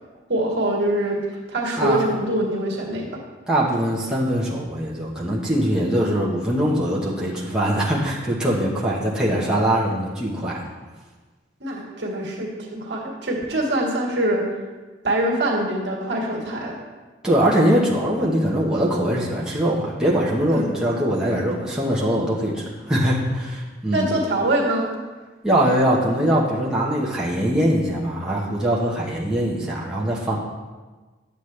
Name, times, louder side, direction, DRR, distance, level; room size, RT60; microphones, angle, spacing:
voice 1, 0.3-1.2 1.5-3.1 11.6-14.4 15.0-16.7 20.5-20.7 23.9-24.9, right 1 dB, 65° right, -2 dB, 1.8 m, -24 dB
voice 2, 3.5-10.6 17.2-24.1 25.4-30.4, right 1 dB, 5° right, -6 dB, 1.1 m, -22 dB
10.0 x 7.4 x 3.3 m, 1.3 s
head